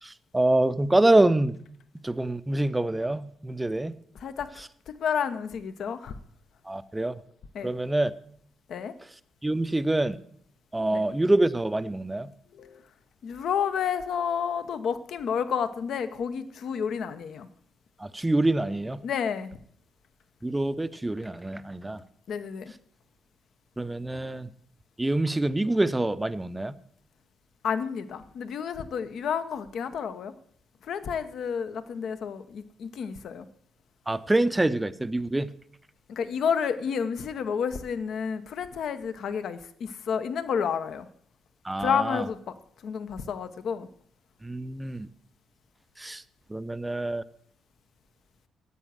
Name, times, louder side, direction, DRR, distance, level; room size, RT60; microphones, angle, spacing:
voice 1, 0.0-1.6 2.0-4.0 4.6-4.7 6.6-7.1 7.6-8.1 9.0-9.1 9.4-10.2 10.7-12.3 18.0-19.0 20.4-22.0 23.8-24.5 25.0-26.8 34.1-35.5 41.6-42.3 44.4-45.1 46.0-46.2 46.5-47.2, right 2 dB, 10° right, 14 dB, 0.6 m, -26 dB
voice 2, 4.9-6.1 7.5-7.7 8.7-8.9 10.9-11.0 12.6-12.8 13.2-17.5 19.0-19.5 22.3-22.7 27.6-30.3 30.9-33.5 36.1-41.1 41.8-42.4 42.8-43.9, left 7 dB, 65° left, 11 dB, 0.9 m, -30 dB
9.8 x 8.2 x 7.5 m, 0.63 s
cardioid pair, 90°, 0 cm